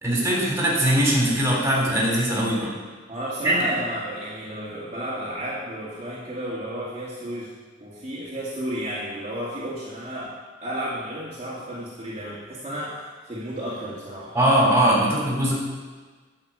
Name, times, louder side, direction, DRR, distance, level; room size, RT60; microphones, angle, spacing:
voice 1, 0.0-2.7 3.4-3.6 14.3-15.5, right 1 dB, 15° right, -3 dB, 3.6 m, -21 dB
voice 2, 3.1-7.5 7.8-10.3 10.6-14.3, equal, 30° right, -9 dB, 2.1 m, -32 dB
10.5 x 6.5 x 8.3 m, 1.4 s
head